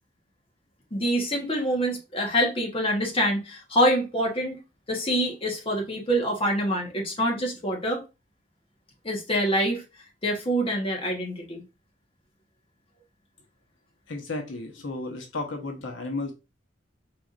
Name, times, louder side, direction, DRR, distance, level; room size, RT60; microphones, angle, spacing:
voice 1, 0.9-4.6 4.9-8.0 9.0-9.8 10.2-11.6, equal, 30° left, 1.2 m, -25 dB
voice 2, 14.1-16.3, left 2 dB, 75° left, 1.0 m, -33 dB
4.8 x 4.1 x 2.5 m
head